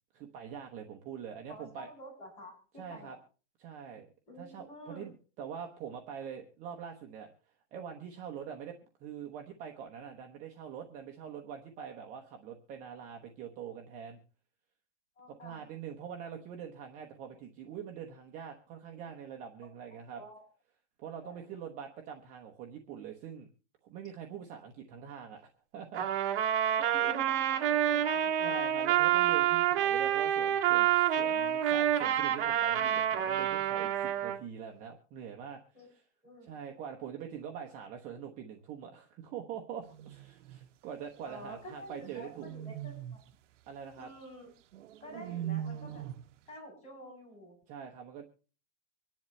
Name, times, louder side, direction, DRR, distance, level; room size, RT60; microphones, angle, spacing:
voice 1, 0.1-1.9 2.7-3.2 3.6-4.1 4.4-7.3 7.7-14.2 15.3-20.2 21.0-23.5 23.8-25.4 25.7-26.2 28.4-35.6 35.9-36.0 36.4-42.5 43.7-44.1 47.7-48.2, right 8 dB, 20° right, 2 dB, 0.9 m, -44 dB
voice 2, 1.5-3.2 4.3-5.1 15.2-15.6 20.2-20.4 21.2-21.4 26.8-28.6 29.1-29.2 35.7-35.9 36.2-36.5 41.2-43.2 43.9-44.5 45.0-46.0 46.5-47.6, equal, 20° left, -2 dB, 7.7 m, -49 dB
Trumpet, 25.9-34.4, right 11 dB, 45° right, 1.8 m, -28 dB
sound 1, 39.8-40.7 42.0-43.3 44.7-46.3, right 11 dB, 75° right, 0.8 m, -41 dB
25.0 x 10.5 x 3.2 m, 0.38 s
supercardioid pair, 170°, 37 cm